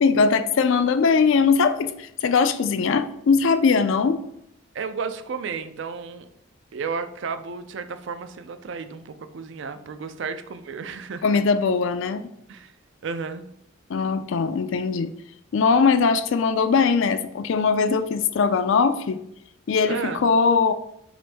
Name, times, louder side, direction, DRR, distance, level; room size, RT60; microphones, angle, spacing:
voice 1, 0.0-4.2 11.2-12.3 13.9-15.1 15.5-19.2 19.7-20.7, left 5 dB, 65° left, 11 dB, 0.4 m, -20 dB
voice 2, 4.7-6.2 6.7-11.2 12.5-12.7 13.0-13.4 19.9-20.3, right 5 dB, 60° right, 10 dB, 0.4 m, -32 dB
6.0 x 2.6 x 3.4 m, 0.77 s
head